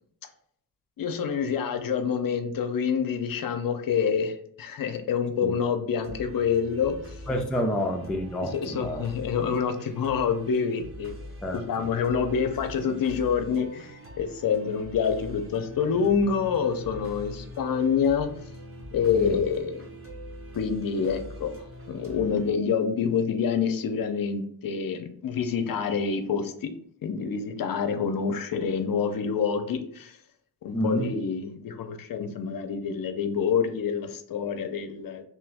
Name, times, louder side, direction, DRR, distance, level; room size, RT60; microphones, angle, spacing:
voice 1, 1.0-7.2 8.5-11.1 11.5-18.3 18.9-19.7 20.5-21.5 21.9-26.7 27.0-30.2 30.6-35.2, left 6 dB, 50° left, 7 dB, 0.6 m, -27 dB
sound 1, 6.0-22.5, equal, 30° right, 1.1 m, -43 dB
voice 2, 7.3-9.0 11.4-12.0 19.1-19.4 30.7-31.1, equal, ahead, 2 dB, 0.3 m, -29 dB
3.2 x 3.0 x 3.5 m, 0.65 s
cardioid pair, 100°, 44 cm